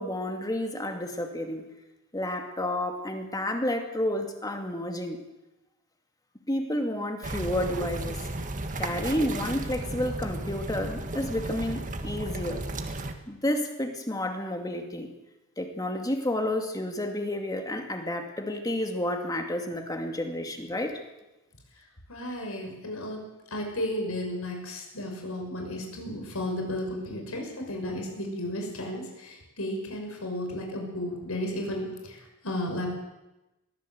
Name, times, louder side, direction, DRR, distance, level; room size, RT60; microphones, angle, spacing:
voice 1, 0.0-1.6 2.1-5.2 6.5-8.2 8.8-12.6 13.3-15.1 15.6-21.0, left 1 dB, 20° left, 4 dB, 2.3 m, -30 dB
sound 1, 7.2-13.1, right 2 dB, 40° right, 1.7 m, -34 dB
voice 2, 22.1-23.2 23.5-32.9, left 1 dB, 85° left, 2 dB, 5.9 m, -33 dB
21.5 x 15.5 x 7.9 m, 1.0 s
head